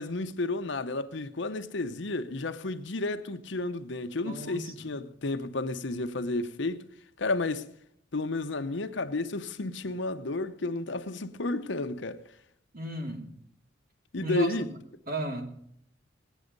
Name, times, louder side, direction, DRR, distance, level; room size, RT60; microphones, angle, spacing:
voice 1, 0.0-6.8 7.2-7.7 8.1-12.2 14.1-14.7, left 2 dB, 65° left, 0.9 m, -32 dB
voice 2, 4.2-4.9 12.7-13.3 14.2-14.5 15.1-15.6, right 1 dB, 50° right, 2.6 m, -35 dB
19.0 x 9.2 x 5.2 m
head